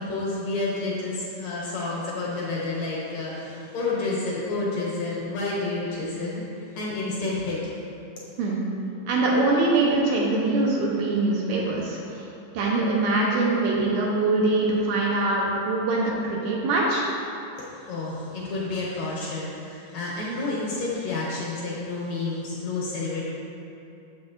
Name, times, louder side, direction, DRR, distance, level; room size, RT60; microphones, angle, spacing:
voice 1, 0.0-6.4 6.7-7.7 17.6-23.2, left 3 dB, 70° left, -5 dB, 1.9 m, -30 dB
voice 2, 9.1-12.3 12.5-17.0, right 2 dB, 75° right, -3 dB, 2.0 m, -23 dB
7.2 x 6.1 x 2.5 m, 2.7 s
omnidirectional pair, 3.7 m